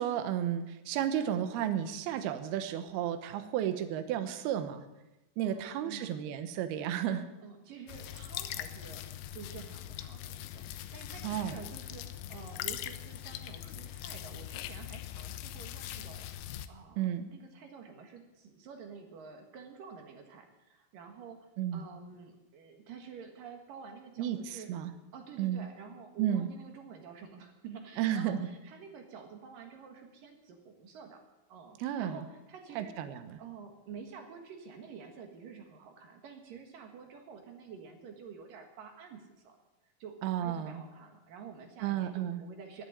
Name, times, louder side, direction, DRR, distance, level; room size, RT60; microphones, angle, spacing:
voice 1, 0.0-4.8 5.4-7.3 11.2-11.6 17.0-17.3 21.6-21.8 24.2-24.9 25.4-25.7 26.2-26.5 28.0-28.5 31.8-32.2 32.8-33.4 40.2-40.8 41.8-42.4, right 10 dB, 75° right, 10 dB, 2.4 m, -33 dB
voice 2, 5.4-6.3 7.4-9.0 9.3-16.3 16.7-24.7 25.1-31.2 31.5-32.9 33.4-39.6 39.8-42.9, right 6 dB, 60° right, 4 dB, 2.5 m, -49 dB
sound 1, 7.9-16.7, left 12 dB, 80° left, 2.8 m, -41 dB
11.5 x 11.0 x 9.7 m, 0.99 s
omnidirectional pair, 5.7 m